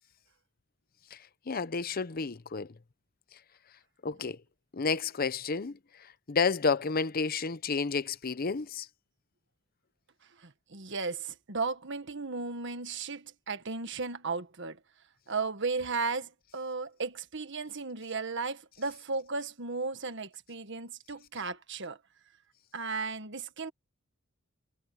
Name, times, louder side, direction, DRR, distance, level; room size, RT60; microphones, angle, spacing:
voice 1, 1.5-2.7 4.0-4.4 4.7-5.8 6.3-8.9, left 4 dB, 45° left, 0.7 m, -30 dB
voice 2, 10.4-14.8 15.3-22.0 22.7-23.7, right 4 dB, 60° right, 1.6 m, -35 dB
head